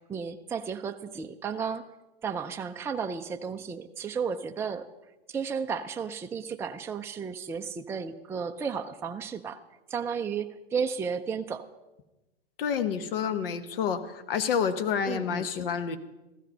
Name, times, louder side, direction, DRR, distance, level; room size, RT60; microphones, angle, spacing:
voice 1, 0.0-1.9 2.2-4.9 5.3-9.6 9.9-11.7 15.1-15.5, right 6 dB, 10° right, 5 dB, 0.4 m, -33 dB
voice 2, 12.6-16.0, left 7 dB, 65° left, 10 dB, 1.3 m, -29 dB
15.0 x 13.0 x 5.4 m, 1.0 s
hypercardioid pair, 110°, 31 cm